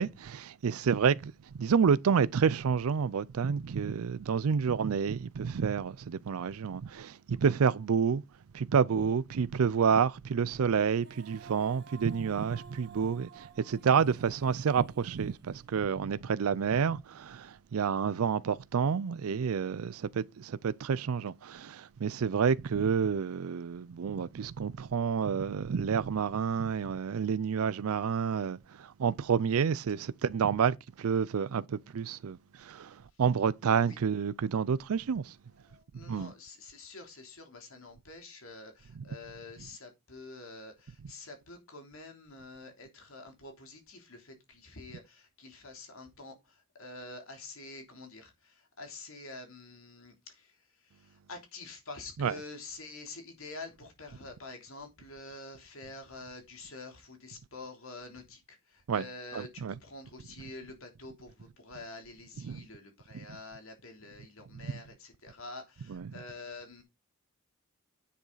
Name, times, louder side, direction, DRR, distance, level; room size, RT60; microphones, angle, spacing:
voice 1, 0.0-8.2 8.5-35.4 35.9-36.3 39.0-39.1 52.2-52.3 58.9-59.0 59.3-59.7 62.4-62.6 63.1-63.2 65.9-66.1, right 6 dB, 80° right, 0.4 m, -29 dB
Female singing, 10.9-16.1, right 6 dB, 50° right, 1.5 m, -53 dB
voice 2, 35.6-66.8, left 3 dB, 70° left, 3.2 m, -47 dB
10.0 x 6.2 x 4.0 m
head